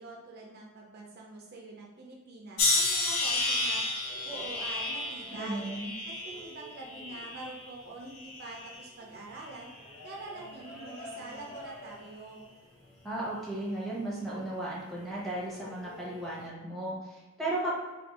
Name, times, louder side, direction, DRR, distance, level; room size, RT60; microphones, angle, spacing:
voice 1, 0.0-3.9 4.2-5.7 6.0-9.7 10.0-12.4, right 2 dB, 45° right, -2 dB, 0.5 m, -45 dB
sound 1, 2.6-7.7 8.2-8.9 9.6-9.9, left 2 dB, 90° left, 0.6 m, -32 dB
sound 2, 3.0-16.5, left 1 dB, 50° left, 1.2 m, -51 dB
voice 2, 5.3-5.9 13.0-17.7, right 1 dB, ahead, -7 dB, 0.9 m, -35 dB
2.7 x 2.6 x 4.1 m, 1.3 s
head